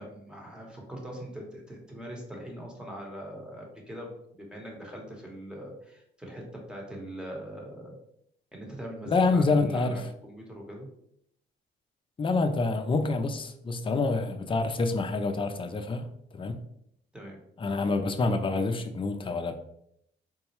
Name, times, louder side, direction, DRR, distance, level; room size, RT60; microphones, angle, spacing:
voice 1, 0.0-6.4 6.7-8.0 8.5-10.9 17.1-17.4, equal, 5° right, 1.1 m, -42 dB
voice 2, 9.1-10.0 12.2-16.1 16.3-16.6 17.6-19.6, left 3 dB, 25° left, 0.4 m, -27 dB
3.9 x 2.2 x 3.0 m
cardioid pair, 90°, 20 cm